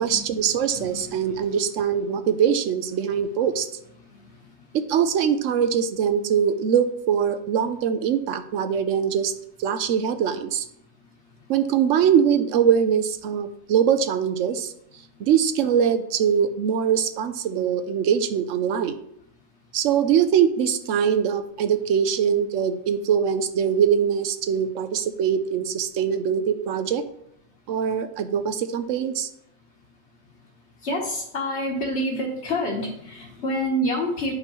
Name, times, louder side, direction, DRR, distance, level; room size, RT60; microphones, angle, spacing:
voice 1, 0.0-3.7 4.7-9.3 9.6-10.7 11.5-14.7 15.2-19.0 19.7-27.0 27.7-29.3, right 8 dB, 75° right, 9 dB, 0.9 m, -22 dB
voice 2, 0.7-1.4 30.8-34.4, equal, 55° left, -3 dB, 1.3 m, -27 dB
9.9 x 5.3 x 3.0 m, 0.74 s
omnidirectional pair, 1.3 m